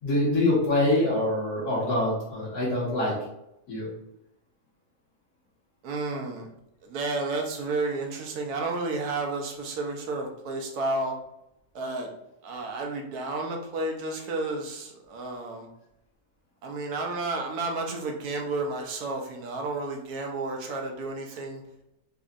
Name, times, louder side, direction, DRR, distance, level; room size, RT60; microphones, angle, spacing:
voice 1, 0.0-3.1 3.7-3.9, left 1 dB, 85° left, -5 dB, 1.9 m, -25 dB
voice 2, 5.8-6.5 6.8-11.1 11.7-12.1 12.4-15.7 16.6-21.6, right 3 dB, 80° right, 2 dB, 1.2 m, -31 dB
4.1 x 2.7 x 2.5 m, 0.84 s
omnidirectional pair, 1.6 m